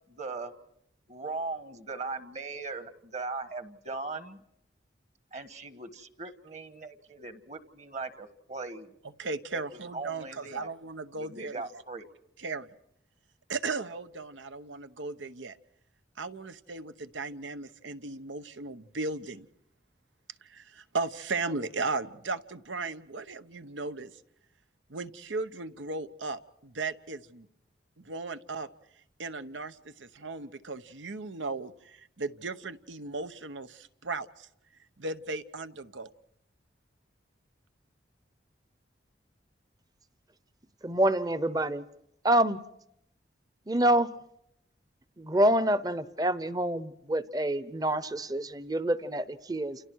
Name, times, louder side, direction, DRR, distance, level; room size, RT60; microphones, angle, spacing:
voice 1, 0.1-0.5 1.1-4.4 5.3-8.9 9.5-10.7 11.2-12.1, right 3 dB, 40° right, 11 dB, 1.4 m, -39 dB
voice 2, 9.2-11.6 12.4-12.7 13.5-15.6 16.2-19.5 20.4-24.1 24.9-27.5 28.0-28.7 29.2-34.5 35.0-36.1, right 3 dB, 90° right, 11 dB, 1.0 m, -36 dB
voice 3, 40.8-41.8 42.2-42.6 43.7-44.1 45.2-49.8, right 1 dB, 20° right, 15 dB, 0.8 m, -27 dB
29.0 x 29.0 x 4.7 m, 0.76 s
head